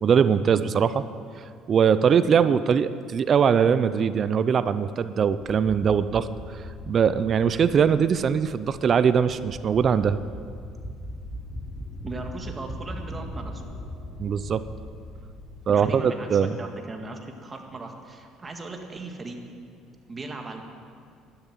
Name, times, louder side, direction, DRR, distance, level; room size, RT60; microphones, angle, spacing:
voice 1, 0.0-1.0 1.7-6.3 6.9-10.2 14.2-14.6 15.7-16.5, right 7 dB, 45° right, 13 dB, 0.5 m, -21 dB
sound 1, 5.3-15.6, equal, ahead, 3.2 m, -39 dB
voice 2, 12.0-13.6 15.7-19.4 20.1-20.6, right 3 dB, 25° right, 4 dB, 1.8 m, -38 dB
12.0 x 11.5 x 7.5 m, 2.2 s
supercardioid pair, 100°, 0 cm